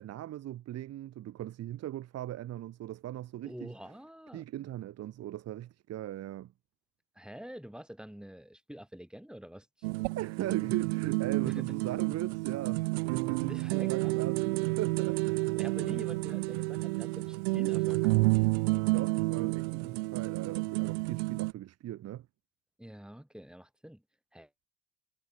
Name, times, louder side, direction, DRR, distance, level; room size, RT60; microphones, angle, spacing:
voice 1, 0.0-3.7 4.3-6.5 10.1-15.2 15.5-15.9 18.8-22.3, right 13 dB, 55° right, 2.7 m, -39 dB
voice 2, 3.4-4.4 7.1-9.9 11.4-12.0 13.4-14.2 15.6-18.3 22.8-24.0 24.3-24.5, equal, 5° right, 5.7 m, -47 dB
sound 1, 9.8-21.5, right 26 dB, 75° right, 0.5 m, -30 dB
hypercardioid pair, 70°, 31 cm